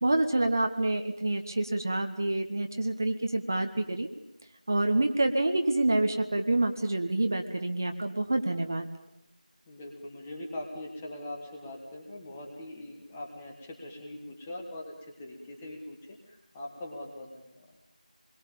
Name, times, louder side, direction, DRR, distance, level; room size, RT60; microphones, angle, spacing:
voice 1, 0.0-4.1 4.7-8.9, right 2 dB, 25° right, 6 dB, 1.1 m, -27 dB
voice 2, 9.7-17.6, left 1 dB, 5° left, 0 dB, 1.3 m, -42 dB
26.0 x 22.0 x 8.8 m, 0.83 s
figure-of-eight pair, 175°, 4 cm